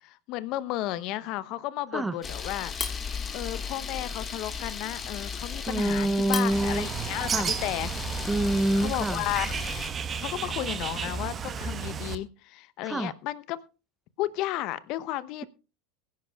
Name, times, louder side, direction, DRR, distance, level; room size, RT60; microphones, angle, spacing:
voice 1, 0.3-2.7 3.3-7.9 8.8-9.5 10.2-13.6 14.2-15.4, left 15 dB, 55° left, 0.8 m, -33 dB
Camera, 2.2-9.9, left 5 dB, 25° left, 1.7 m, -35 dB
voice 2, 5.7-6.9 7.3-7.5 8.3-9.2 12.8-13.1, right 1 dB, 10° right, 0.6 m, -26 dB
Bird, 6.5-12.2, right 6 dB, 30° right, 1.1 m, -33 dB
22.0 x 10.5 x 2.3 m
hypercardioid pair, 90°, 0 cm